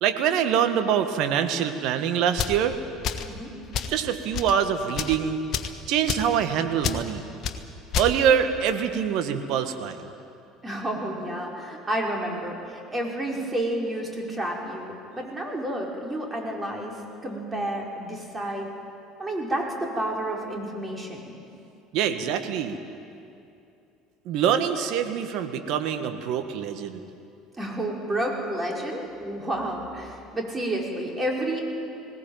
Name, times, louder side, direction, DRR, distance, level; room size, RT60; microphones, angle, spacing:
voice 1, 0.0-2.8 3.9-5.4 5.9-7.2 7.9-10.0 21.9-22.8 24.2-27.0, right 8 dB, 60° right, 8 dB, 1.6 m, -24 dB
sound 1, 2.3-2.6 3.0-3.3 3.7-4.0 4.3-4.6 4.9-5.2 5.5-5.8 6.1-6.3 6.8-7.0 7.4-7.6 7.9-8.1, left 8 dB, 50° left, 1.4 m, -28 dB
voice 2, 10.6-17.0 17.2-18.7 19.2-21.4 27.6-31.6, right 1 dB, 20° right, -1 dB, 5.4 m, -30 dB
20.0 x 18.0 x 9.1 m, 2.6 s
hypercardioid pair, 65°, 0 cm